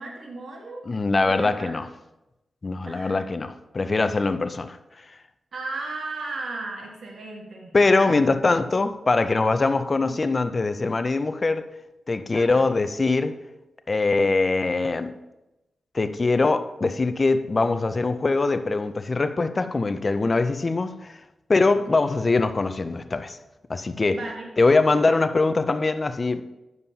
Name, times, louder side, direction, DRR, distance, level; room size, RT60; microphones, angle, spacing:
voice 1, 0.0-0.8 1.2-1.7 2.9-3.2 5.5-8.4 10.0-10.2 12.3-12.7 21.7-21.8 24.1-24.5 25.1-25.2, right 3 dB, 70° right, 0 dB, 1.6 m, -36 dB
voice 2, 0.9-1.8 2.6-4.8 7.7-11.7 12.1-13.3 13.9-15.1 15.9-21.2 21.5-23.4 23.7-24.2 24.6-26.4, left 3 dB, 45° left, 10 dB, 0.5 m, -22 dB
9.4 x 6.9 x 2.8 m, 0.96 s
cardioid pair, 50°, 0 cm